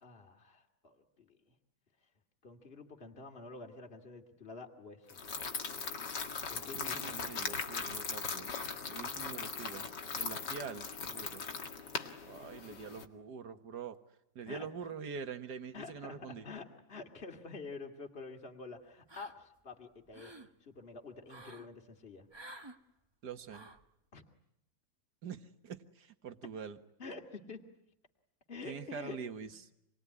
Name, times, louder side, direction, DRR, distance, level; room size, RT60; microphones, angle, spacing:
voice 1, 0.0-1.4 2.4-5.3 6.5-7.3 14.5-14.7 15.7-20.3 20.6-22.3 24.1-24.2 27.0-27.6 28.5-29.2 29.4-29.7, left 4 dB, 35° left, 4 dB, 2.6 m, -48 dB
sound 1, 5.1-13.0, left 5 dB, 90° left, 2.6 m, -39 dB
voice 2, 6.7-8.5 8.9-9.9 10.2-11.4 12.2-14.0 14.4-16.5 23.2-23.7 25.2-26.8 28.7-29.5, right 6 dB, 75° right, 9 dB, 2.1 m, -44 dB
sound 2, 19.1-19.6 20.0-20.5 21.3-21.7 22.3-22.8 23.5-23.9, right 1 dB, 15° right, 1.3 m, -51 dB
28.0 x 21.0 x 9.8 m, 0.82 s
omnidirectional pair, 1.8 m